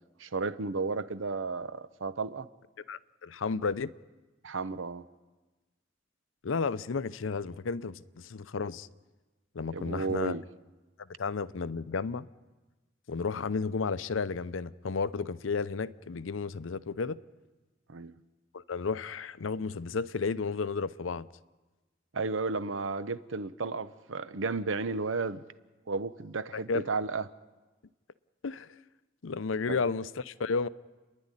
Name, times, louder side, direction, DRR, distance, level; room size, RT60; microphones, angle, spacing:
voice 1, 0.2-2.5 4.4-5.0 9.7-10.4 17.9-18.1 22.1-25.4 25.9-27.2 29.7-29.8, right 4 dB, 80° right, 0.8 m, -33 dB
voice 2, 2.9-3.9 6.4-8.9 9.5-10.3 11.2-12.3 13.1-17.2 18.5-21.3 26.5-26.8 28.4-28.7 29.2-30.7, left 4 dB, 85° left, 0.6 m, -32 dB
29.5 x 11.0 x 9.9 m
head